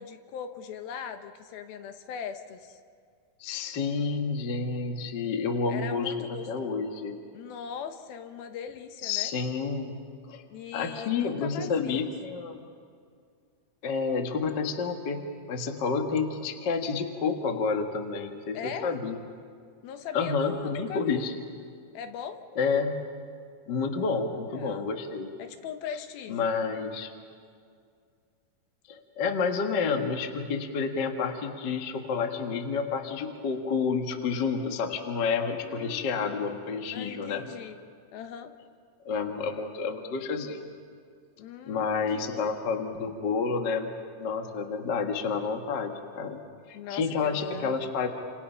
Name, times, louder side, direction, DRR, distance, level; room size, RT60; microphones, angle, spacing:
voice 1, 0.0-2.8 5.7-6.8 7.3-9.3 10.5-12.1 18.5-19.0 19.8-21.2 21.9-22.4 24.0-24.9 25.4-26.5 35.6-37.8 38.1-38.5 41.4-42.5 46.7-47.9, left 7 dB, 75° left, 8 dB, 2.7 m, -40 dB
voice 2, 3.4-6.1 6.5-7.2 9.0-10.0 10.3-10.4 10.7-12.6 13.8-15.2 15.5-19.2 20.1-21.3 22.5-23.0 23.7-25.3 26.3-27.1 28.9-37.5 39.0-40.6 41.7-43.9 44.2-46.4 46.7-48.1, left 5 dB, 55° left, 4 dB, 1.2 m, -29 dB
29.5 x 27.0 x 5.7 m, 2.2 s
omnidirectional pair, 4.6 m